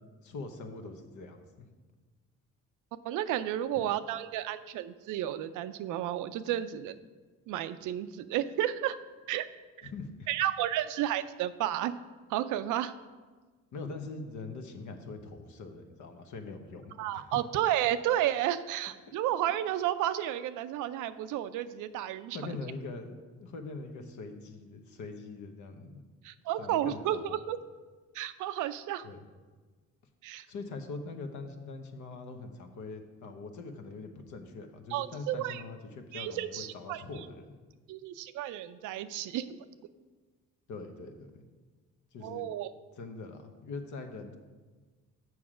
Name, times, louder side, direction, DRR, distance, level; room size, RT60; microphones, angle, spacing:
voice 1, 0.2-1.7 9.8-10.3 13.7-17.4 19.0-19.1 22.3-26.0 26.6-27.4 29.0-29.2 30.5-37.6 40.7-41.5 42.1-42.5 43.0-44.4, left 3 dB, 75° left, 6 dB, 1.0 m, -43 dB
voice 2, 3.0-7.0 7.5-9.0 9.3-9.5 10.3-12.0 12.3-12.9 17.0-22.4 26.2-27.6 28.1-29.1 30.2-30.5 34.9-35.6 36.1-37.0 37.9-39.6 42.2-42.7, right 12 dB, 90° right, 13 dB, 0.5 m, -32 dB
7.1 x 6.3 x 5.0 m, 1.4 s
cardioid pair, 90°, 30 cm